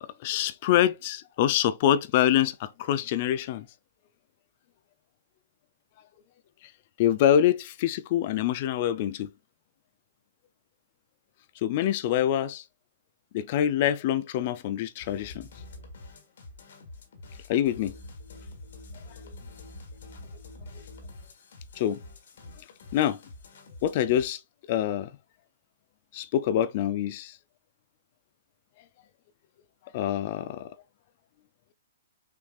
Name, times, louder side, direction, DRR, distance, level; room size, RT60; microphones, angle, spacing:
voice 1, 0.0-3.6 7.0-9.3 11.6-12.6 13.3-15.5 17.5-17.9 21.8-22.0 22.9-23.2 23.8-24.4 24.7-25.1 26.1-27.3 29.9-30.7, left 11 dB, 45° left, 0.5 m, -25 dB
sound 1, 15.0-24.3, left 2 dB, 70° left, 1.9 m, -46 dB
6.5 x 3.3 x 2.4 m
hypercardioid pair, 135°, 0 cm